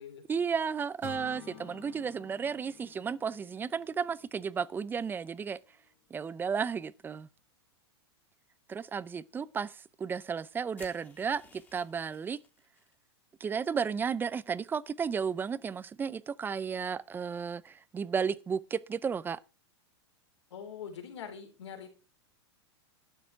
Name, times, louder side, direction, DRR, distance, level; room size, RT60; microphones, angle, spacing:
voice 1, 0.3-5.6 6.1-7.3 8.7-9.7 10.0-12.4 13.4-19.4, right 6 dB, 15° right, 0.5 m, -33 dB
sound 1, 1.0-5.0, left 9 dB, 35° left, 1.6 m, -51 dB
sound 2, 10.8-12.9, left 4 dB, 15° left, 2.5 m, -57 dB
voice 2, 20.5-21.9, left 7 dB, 80° left, 3.7 m, -43 dB
12.0 x 8.9 x 4.5 m
hypercardioid pair, 125°, 14 cm